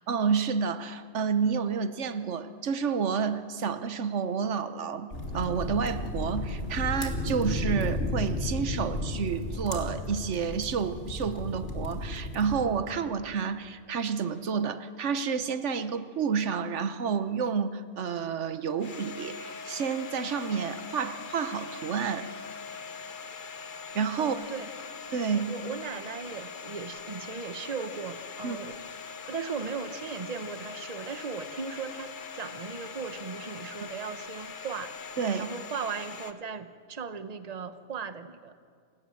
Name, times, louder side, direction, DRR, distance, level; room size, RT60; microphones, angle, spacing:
voice 1, 0.1-22.3 23.9-24.4 25.1-25.5 28.4-28.6 35.2-35.5, right 6 dB, 85° right, 12 dB, 1.3 m, -30 dB
sound 1, 5.1-12.7, left 1 dB, 75° left, 2.9 m, -33 dB
Domestic sounds home sounds, 18.8-36.3, left 5 dB, 45° left, 1.2 m, -42 dB
voice 2, 24.2-24.7 25.5-28.8 29.3-34.9 35.4-38.5, right 5 dB, 35° right, 11 dB, 1.0 m, -37 dB
28.0 x 17.0 x 7.7 m, 2.1 s
omnidirectional pair, 1.2 m